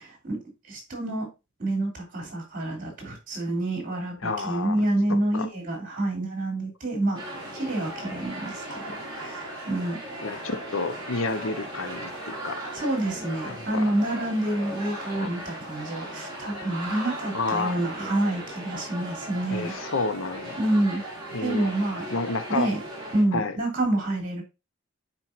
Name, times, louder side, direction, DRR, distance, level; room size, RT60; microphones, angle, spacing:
voice 1, 0.7-1.3 1.6-7.2 7.6-8.8 9.1-10.0 12.7-19.7 20.6-21.0 21.4-22.0 22.5-22.8 23.1-24.4, right 1 dB, 40° right, 3.2 m, -28 dB
voice 2, 4.2-5.5 10.2-12.6 13.5-13.9 15.1-15.3 17.3-17.8 19.5-20.6 21.3-21.7 22.1-22.7 23.3-23.5, left 3 dB, 85° left, 0.9 m, -30 dB
sound 1, 7.1-23.2, right 1 dB, 20° right, 3.0 m, -37 dB
8.9 x 4.5 x 2.6 m
head